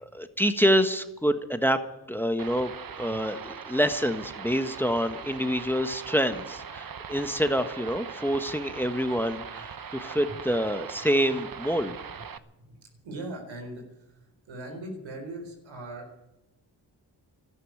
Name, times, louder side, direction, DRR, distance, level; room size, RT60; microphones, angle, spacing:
voice 1, 0.0-1.8 2.1-11.9, equal, 5° left, 8 dB, 1.3 m, -27 dB
sound 1, 2.4-12.4, right 7 dB, 50° right, 1.0 m, -41 dB
voice 2, 12.6-16.1, right 1 dB, 90° right, 3 dB, 4.3 m, -40 dB
12.5 x 11.5 x 9.5 m, 0.97 s
cardioid pair, 50°, 45 cm